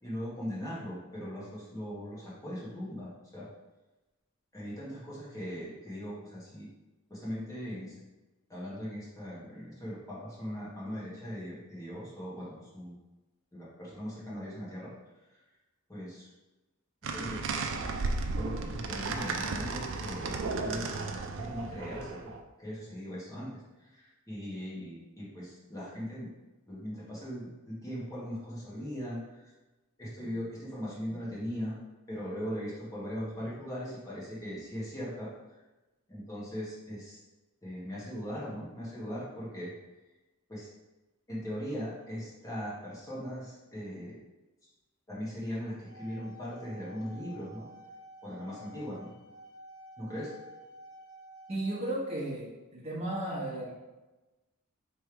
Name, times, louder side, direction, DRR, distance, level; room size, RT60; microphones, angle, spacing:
voice 1, 0.0-3.5 4.5-6.7 7.1-7.9 8.5-12.9 13.5-14.9 15.9-16.3 17.0-17.7 18.4-20.3 20.6-22.2 22.6-23.5 23.8-26.3 26.7-29.5 30.0-31.8 32.1-35.3 36.1-37.2 37.6-39.7 40.5-40.7 41.3-44.2 45.1-47.7 48.2-49.1 50.0-50.3, equal, 15° left, -7 dB, 1.5 m, -39 dB
sound 1, 17.0-22.4, right 3 dB, 60° right, 0.4 m, -34 dB
sound 2, 45.7-51.9, equal, 85° left, 0.6 m, -51 dB
voice 2, 51.5-53.7, right 1 dB, 30° right, -6 dB, 1.3 m, -34 dB
3.4 x 3.4 x 4.6 m, 1.1 s
head